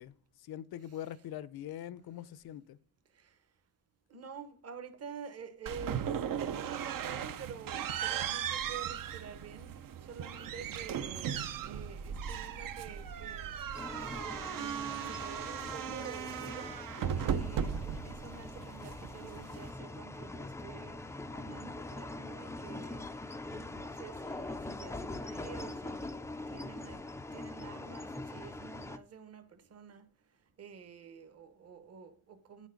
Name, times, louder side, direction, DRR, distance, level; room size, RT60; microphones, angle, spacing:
voice 1, 0.0-2.8, left 11 dB, 70° left, 0.6 m, -43 dB
voice 2, 4.1-11.4 11.6-13.6 13.9-30.1 30.6-32.7, right 6 dB, 40° right, 1.0 m, -49 dB
sound 1, 5.7-19.7, right 8 dB, 60° right, 0.7 m, -37 dB
sound 2, 13.7-29.0, left 2 dB, 10° left, 0.3 m, -43 dB
9.6 x 6.5 x 5.1 m
wide cardioid pair, 165°, 39 cm